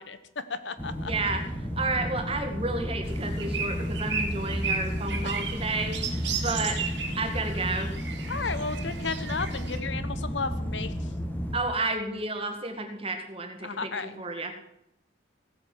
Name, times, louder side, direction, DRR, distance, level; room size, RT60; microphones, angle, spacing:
voice 1, 0.0-1.1 8.3-11.1 13.6-14.2, left 4 dB, 70° left, 12 dB, 1.1 m, -34 dB
amb int air installation ventilation system drone loud, 0.8-11.6, equal, 10° left, 2.0 m, -33 dB
voice 2, 1.0-1.4 1.8-6.0 6.4-6.8 7.2-7.9 11.5-14.5, right 2 dB, 30° right, 5 dB, 2.0 m, -31 dB
sound 1, 3.0-9.8, right 5 dB, 65° right, 2.5 m, -35 dB
16.5 x 9.1 x 7.8 m, 0.82 s
head